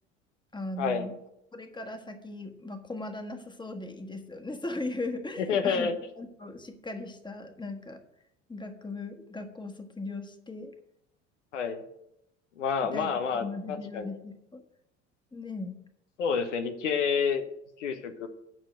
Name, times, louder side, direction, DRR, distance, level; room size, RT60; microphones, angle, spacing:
voice 1, 0.5-1.2 1.5-5.9 6.2-8.0 8.5-10.7 12.8-14.6 15.3-15.8, left 2 dB, 10° left, 6 dB, 1.5 m, -38 dB
voice 2, 5.5-5.9 11.5-11.8 12.6-14.1 16.2-17.4 17.8-18.3, left 6 dB, 80° left, 8 dB, 1.0 m, -28 dB
9.0 x 6.5 x 6.3 m, 0.79 s
hypercardioid pair, 70°, 36 cm